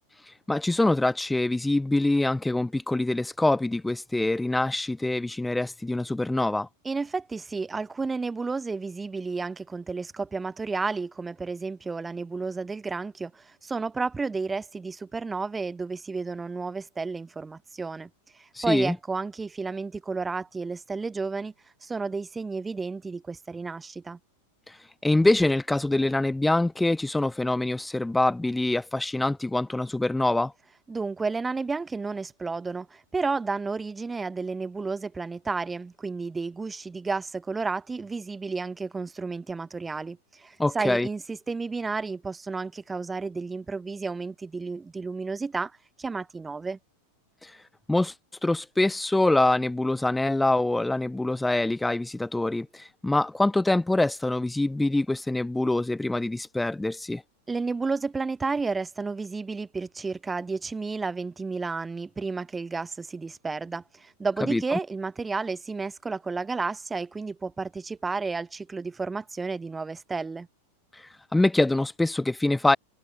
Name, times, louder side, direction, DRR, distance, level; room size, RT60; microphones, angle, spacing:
voice 1, 0.1-6.7 18.5-18.9 24.7-30.5 40.6-41.1 47.4-57.2 64.5-64.8 70.9-72.8, left 2 dB, 5° left, 1.3 m, -25 dB
voice 2, 6.8-21.5 21.8-24.2 30.9-45.7 46.0-46.8 57.5-70.5, right 4 dB, 10° right, 3.1 m, -32 dB
figure-of-eight pair, 90°, 0 cm